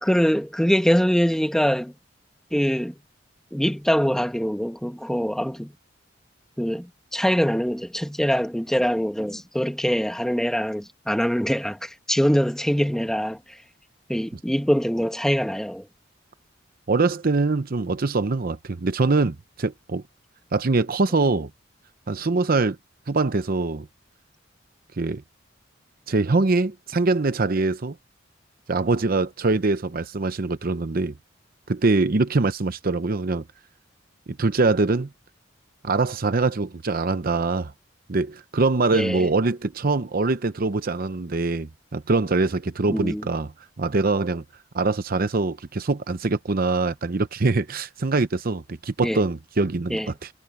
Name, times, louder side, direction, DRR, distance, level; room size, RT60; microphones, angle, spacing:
voice 1, 0.0-1.9 2.5-3.0 3.5-5.7 6.6-13.4 14.1-15.9 38.9-39.3 42.9-43.3 49.0-49.2 49.9-50.1, equal, 5° left, 1.3 m, -23 dB
voice 2, 16.9-20.0 20.5-21.5 22.1-22.8 23.1-23.9 25.0-25.2 26.1-27.9 28.7-31.1 31.7-33.4 34.4-35.1 35.8-37.7 38.1-43.5 43.8-44.4 44.7-50.3, right 3 dB, 50° right, 0.7 m, -23 dB
head